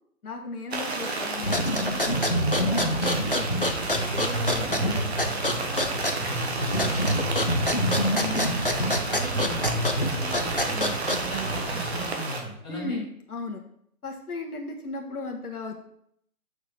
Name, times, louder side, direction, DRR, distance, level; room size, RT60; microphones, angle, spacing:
voice 1, 0.2-2.9 3.3-7.4 12.7-13.6 14.0-15.8, left 3 dB, 70° left, 1 dB, 1.5 m, -37 dB
sound 1, 0.7-12.4, right 3 dB, 40° right, 1.3 m, -32 dB
sound 2, 1.4-11.5, left 1 dB, 40° left, 0.4 m, -27 dB
sound 3, 2.1-12.1, right 1 dB, 65° right, 2.0 m, -33 dB
voice 2, 8.2-8.6 9.0-13.0, right 1 dB, 5° right, -12 dB, 0.9 m, -38 dB
6.4 x 5.0 x 5.8 m, 0.72 s
hypercardioid pair, 165°, 47 cm